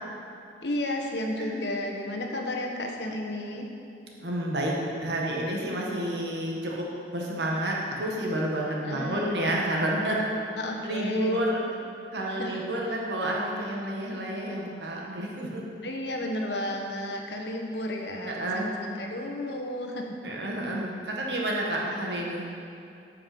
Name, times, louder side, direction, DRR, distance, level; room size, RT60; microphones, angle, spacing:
voice 1, 0.6-3.7 8.9-9.4 10.6-11.5 12.3-12.6 15.8-20.3 21.8-21.9, left 1 dB, 80° left, 2 dB, 1.2 m, -33 dB
voice 2, 4.2-6.9 7.1-10.2 10.8-11.6 12.1-15.6 18.2-18.8 20.2-22.5, right 1 dB, 80° right, -2 dB, 1.6 m, -30 dB
10.5 x 5.8 x 6.1 m, 2.6 s
head